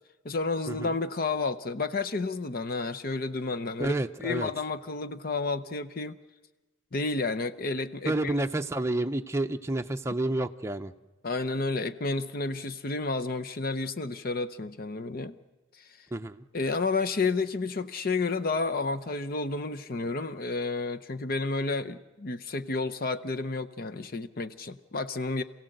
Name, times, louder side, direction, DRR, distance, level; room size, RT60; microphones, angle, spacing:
voice 1, 0.2-3.9 4.2-6.2 6.9-8.3 11.2-15.4 16.5-25.4, left 3 dB, 50° left, 10 dB, 0.7 m, -31 dB
voice 2, 3.8-4.5 8.1-10.9 16.1-16.4, right 1 dB, 15° right, 6 dB, 0.6 m, -30 dB
27.0 x 16.5 x 7.8 m, 1.2 s
head